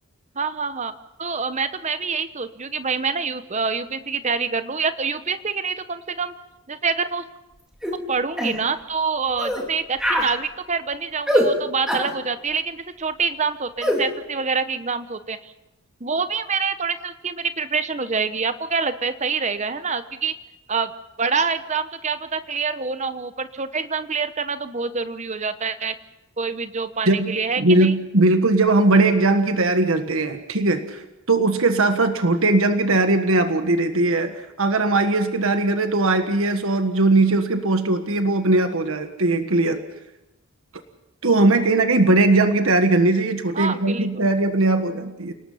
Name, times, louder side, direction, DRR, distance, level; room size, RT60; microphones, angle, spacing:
voice 1, 0.3-0.9 1.2-6.3 6.7-7.2 8.1-15.5 16.0-20.3 20.7-20.9 21.2-25.9 26.4-27.9 43.5-44.3, right 5 dB, 30° right, 11 dB, 0.9 m, -26 dB
sound 1, 7.8-8.0 8.4-8.6 9.4-9.6 10.0-10.3 11.3-11.5 11.9-12.1 13.8-14.0, equal, 5° right, 3.2 m, -22 dB
voice 2, 27.1-39.8 41.2-45.3, right 2 dB, 70° right, 7 dB, 1.5 m, -19 dB
29.0 x 19.0 x 5.7 m, 0.97 s
head